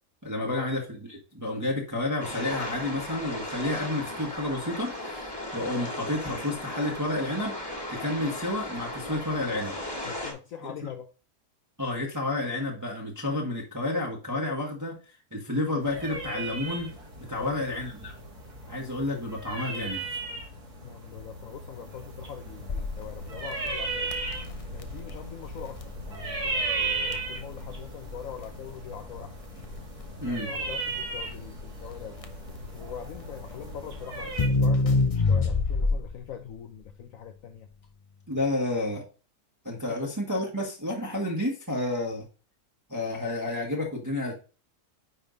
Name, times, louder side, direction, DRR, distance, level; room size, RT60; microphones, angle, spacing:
voice 1, 0.2-0.8 1.1-7.5 7.9-9.7 11.8-15.0 15.3-16.9 17.3-18.1 18.7-20.1 30.2-30.5 38.3-39.0 39.6-42.3 42.9-44.4, left 2 dB, 10° right, 1.3 m, -30 dB
sound 1, 2.2-10.3, left 1 dB, 15° left, 1.8 m, -36 dB
voice 2, 10.0-11.1 17.3-17.6 20.8-24.1 24.7-29.3 30.3-32.2 32.7-37.7 39.9-40.1, left 9 dB, 65° left, 1.0 m, -42 dB
sound 2, 15.8-34.5, right 3 dB, 85° right, 2.9 m, -36 dB
Crackle, 22.7-36.3, left 3 dB, 50° left, 0.4 m, -29 dB
9.9 x 3.5 x 3.9 m
omnidirectional pair, 1.6 m